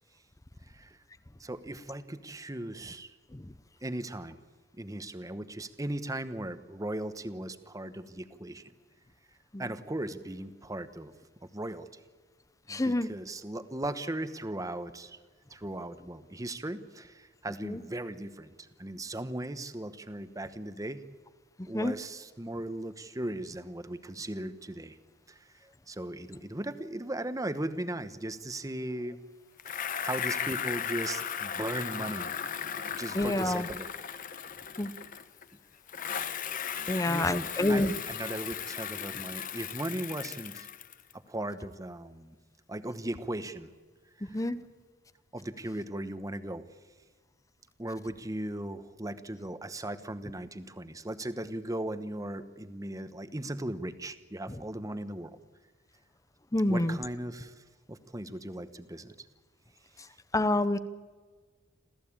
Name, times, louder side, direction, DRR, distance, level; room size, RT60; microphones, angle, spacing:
voice 1, 1.4-3.1 3.8-4.4 4.8-8.6 9.6-11.1 11.4-11.9 12.7-15.2 15.5-18.5 18.8-21.0 21.6-25.0 25.6-29.2 30.0-32.3 32.9-34.2 36.8-40.7 41.1-42.4 42.7-43.7 44.2-44.4 45.3-46.6 47.8-55.4 56.7-57.5 57.9-59.1, right 1 dB, 15° right, 12 dB, 1.0 m, -37 dB
voice 2, 12.7-13.1 17.6-17.8 21.7-21.9 33.1-33.7 34.8-34.9 36.9-37.9 44.3-44.6 56.5-57.0 60.3-60.8, left 1 dB, 15° left, 14 dB, 0.7 m, -27 dB
Bicycle, 29.6-35.5 35.9-41.1, left 8 dB, 45° left, 0.9 m, -36 dB
27.5 x 14.5 x 8.7 m, 1.4 s
head